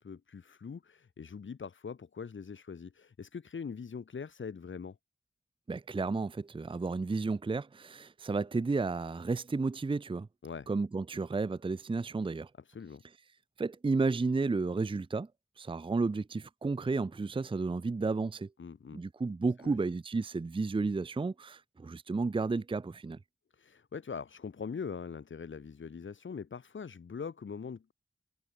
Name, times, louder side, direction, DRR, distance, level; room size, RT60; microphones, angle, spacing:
voice 1, 0.0-5.0 10.4-10.7 12.6-13.0 18.6-19.0 19.6-19.8 23.5-27.9, left 6 dB, 90° left, 1.0 m, -42 dB
voice 2, 5.7-10.3 10.7-12.5 13.6-15.3 15.6-18.5 18.9-23.2, right 3 dB, 25° right, 0.5 m, -32 dB
wide cardioid pair, 55°, 19 cm